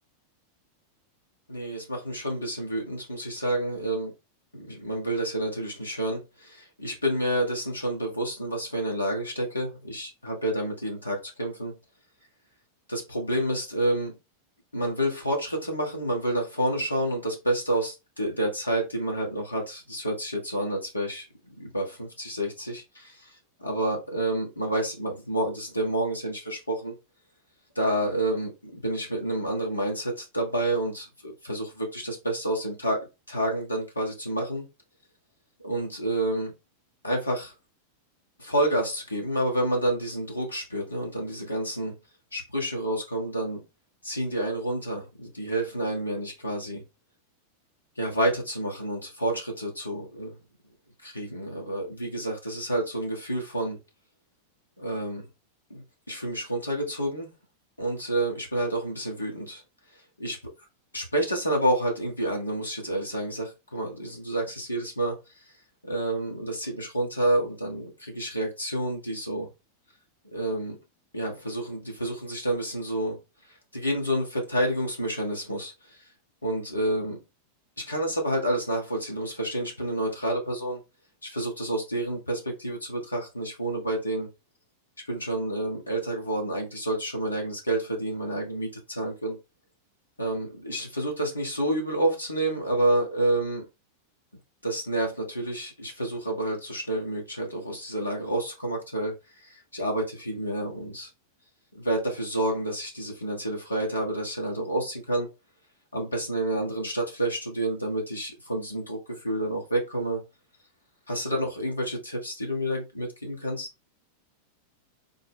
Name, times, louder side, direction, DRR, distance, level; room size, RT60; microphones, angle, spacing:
voice 1, 1.5-4.1 4.5-11.7 12.9-14.1 14.7-21.3 21.6-23.3 23.6-26.9 27.7-34.6 35.6-36.5 37.0-37.5 38.4-41.9 42.3-43.6 44.0-46.8 48.0-50.4 51.0-53.8 54.8-55.2 55.7-57.3 57.8-59.6 60.2-60.4 60.9-65.2 65.8-69.5 70.3-70.8 71.1-73.2 73.7-76.0 76.4-77.2 77.8-80.8 81.2-84.3 85.1-89.4 90.2-93.6 94.6-99.1 99.4-101.1 101.7-105.3 105.9-110.2 111.1-113.7, right 1 dB, 80° left, 1.2 m, -29 dB
3.9 x 2.1 x 3.5 m
figure-of-eight pair, 90°, 0 cm